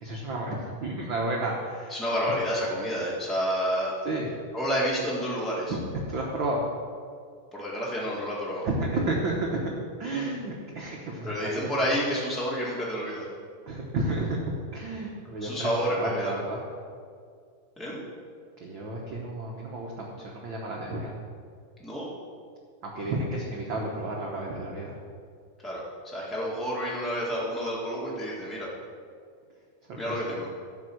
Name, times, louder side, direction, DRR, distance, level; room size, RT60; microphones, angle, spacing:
voice 1, 0.0-2.0 4.0-4.3 5.7-6.6 8.6-9.6 10.0-12.0 13.7-16.6 18.6-21.1 22.8-25.0 29.9-30.4, right 2 dB, 65° right, -2 dB, 1.2 m, -32 dB
voice 2, 1.9-3.9 4.5-5.7 7.5-8.7 11.2-13.3 15.4-16.3 17.8-18.0 21.8-22.1 25.6-28.7 29.9-30.5, equal, ahead, -6 dB, 0.4 m, -29 dB
12.5 x 4.7 x 7.7 m, 2.2 s
omnidirectional pair, 3.7 m